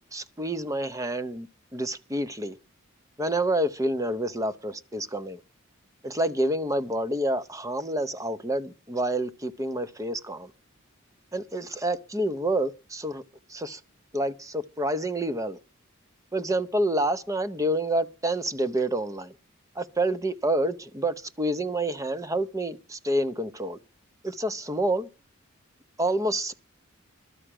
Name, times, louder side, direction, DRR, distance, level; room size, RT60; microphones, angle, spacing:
voice 1, 0.1-1.5 1.7-2.6 3.2-5.4 6.0-10.5 11.3-13.2 13.5-13.8 14.1-15.6 16.3-19.3 19.8-23.8 24.2-25.1 26.0-26.5, right 1 dB, 15° right, 0.8 m, -28 dB
12.5 x 6.5 x 8.8 m
head